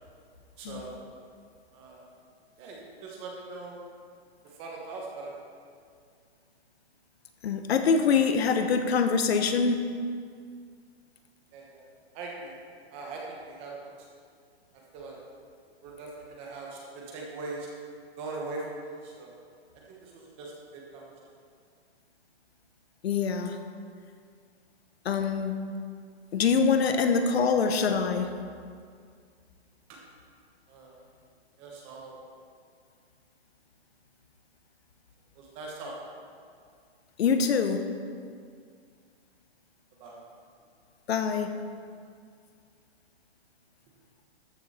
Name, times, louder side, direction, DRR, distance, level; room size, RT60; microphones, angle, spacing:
voice 1, 0.6-1.0 1.7-2.0 2.6-3.8 4.4-5.4 11.5-11.9 12.1-12.5 12.9-13.9 14.7-15.2 15.8-17.7 18.2-19.4 19.9-21.1 29.9-30.0 30.7-31.0 31.6-32.2 35.3-35.9 40.0-40.2, right 3 dB, 20° right, -2 dB, 1.2 m, -41 dB
voice 2, 7.4-9.9 23.0-23.6 25.0-25.6 26.3-28.3 37.2-37.8 41.1-41.5, left 5 dB, 75° left, 7 dB, 1.0 m, -24 dB
13.5 x 6.6 x 4.3 m, 2.2 s
hypercardioid pair, 175°, 32 cm